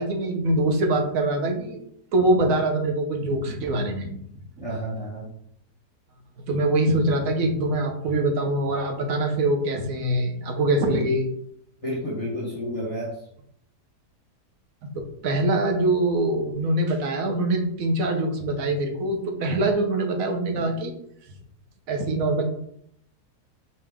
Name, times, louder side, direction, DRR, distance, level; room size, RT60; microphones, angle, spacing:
voice 1, 0.0-1.8 2.1-4.1 6.5-11.2 14.8-20.9 21.9-22.4, right 1 dB, 60° right, 3 dB, 1.1 m, -24 dB
voice 2, 4.6-5.3 10.9-11.1 11.8-13.3, equal, 25° left, -6 dB, 0.9 m, -31 dB
5.0 x 2.9 x 3.5 m, 0.69 s
omnidirectional pair, 1.8 m